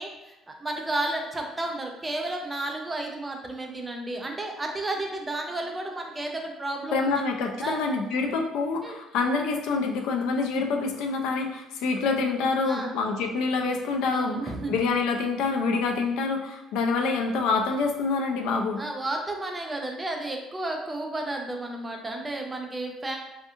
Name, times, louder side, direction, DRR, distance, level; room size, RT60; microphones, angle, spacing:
voice 1, 0.0-7.2 7.6-7.8 8.8-9.0 12.7-12.9 14.1-14.8 18.8-23.2, right 2 dB, 15° right, 2 dB, 0.3 m, -32 dB
voice 2, 6.9-18.8, left 4 dB, 85° left, 3 dB, 0.3 m, -26 dB
2.4 x 2.4 x 2.6 m, 0.94 s
cardioid pair, 155°, 0 cm